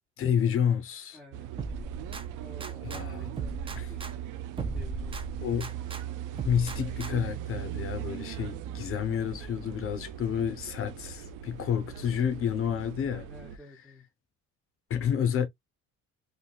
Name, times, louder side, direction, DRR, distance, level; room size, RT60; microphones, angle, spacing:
voice 1, 0.2-1.2 2.8-3.2 3.8-3.9 5.4-5.7 6.3-13.3 14.9-15.5, left 8 dB, 45° left, 0.7 m, -29 dB
voice 2, 1.1-1.5 2.4-4.2 4.7-5.6 6.3-6.5 13.2-14.1, left 1 dB, ahead, 0.8 m, -52 dB
sound 1, 1.3-13.6, right 11 dB, 85° right, 0.5 m, -39 dB
sound 2, 1.6-3.0 3.4-6.0 6.4-7.4, right 3 dB, 20° right, 0.5 m, -38 dB
3.7 x 2.3 x 2.3 m
cardioid pair, 125°, 31 cm